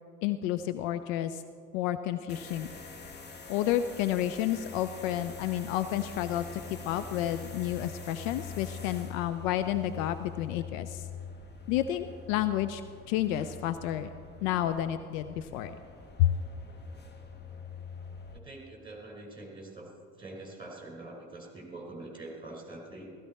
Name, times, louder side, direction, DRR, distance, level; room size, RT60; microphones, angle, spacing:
voice 1, 0.2-1.4 1.7-2.7 3.5-11.1 11.7-12.8 13.1-14.1 14.4-15.7 16.2-16.3, left 12 dB, 60° left, 11 dB, 0.6 m, -30 dB
sound 1, 2.3-18.4, left 5 dB, 25° left, 1.4 m, -45 dB
voice 2, 18.3-19.9 20.2-23.1, right 2 dB, 10° right, -1 dB, 4.7 m, -44 dB
15.5 x 15.0 x 4.2 m, 2.3 s
figure-of-eight pair, 60°, 45 cm